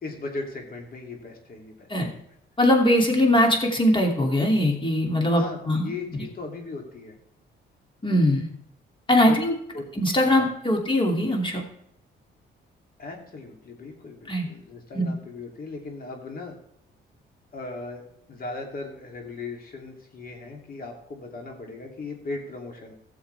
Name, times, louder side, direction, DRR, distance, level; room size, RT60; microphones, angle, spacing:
voice 1, 0.0-2.2 5.3-7.2 9.2-9.4 9.7-9.9 10.3-10.5 13.0-16.6 17.5-18.0 18.3-22.9, left 3 dB, 45° left, 2 dB, 2.9 m, -37 dB
voice 2, 2.6-5.9 8.0-8.5 9.1-9.5 10.0-11.6 14.3-14.5 14.9-15.1, left 1 dB, 25° left, 2 dB, 2.7 m, -21 dB
15.5 x 7.1 x 3.4 m, 0.74 s
cardioid pair, 90°, 20 cm